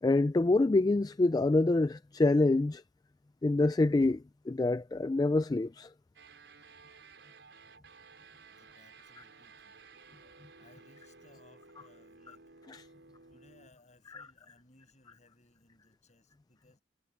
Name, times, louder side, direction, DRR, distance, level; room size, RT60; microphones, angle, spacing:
voice 1, 0.0-2.8 3.4-5.9 14.1-14.2, left 2 dB, 20° left, 0.3 m, -26 dB
sound 1, 6.1-13.7, right 4 dB, 80° right, 4.5 m, -56 dB
voice 2, 8.5-9.8 10.6-12.5 13.3-16.8, left 2 dB, 40° left, 6.9 m, -63 dB
head